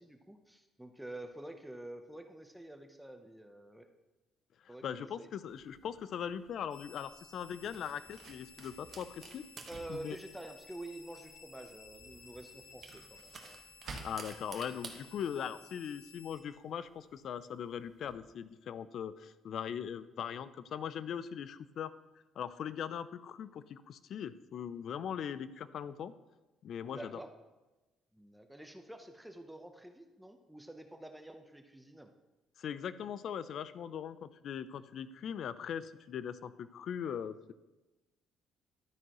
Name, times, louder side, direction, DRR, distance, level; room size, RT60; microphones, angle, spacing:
voice 1, 0.0-3.9 4.7-5.3 9.7-13.6 26.9-27.3 28.1-32.1, right 1 dB, 5° right, 5 dB, 0.8 m, -48 dB
voice 2, 4.8-9.4 9.9-10.2 13.8-21.9 22.4-26.1 26.6-27.2 32.6-37.5, left 8 dB, 60° left, 15 dB, 0.4 m, -40 dB
sound 1, 5.5-18.1, right 5 dB, 45° right, 1.2 m, -54 dB
Drawer open or close, 6.4-15.0, right 4 dB, 70° right, 2.0 m, -55 dB
sound 2, 6.7-16.4, left 5 dB, 90° left, 2.7 m, -57 dB
12.5 x 9.2 x 3.0 m, 1.1 s
cardioid pair, 110°, 0 cm